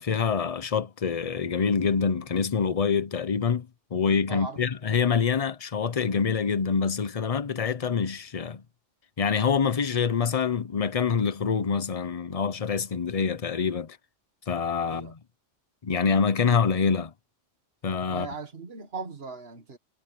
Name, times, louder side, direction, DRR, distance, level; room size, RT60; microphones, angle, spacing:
voice 1, 0.0-8.6 9.2-14.0 14.5-15.2 15.8-17.1 17.8-18.3, left 6 dB, 35° left, 0.8 m, -26 dB
voice 2, 18.1-19.8, right 4 dB, 55° right, 1.9 m, -38 dB
omnidirectional pair, 1.3 m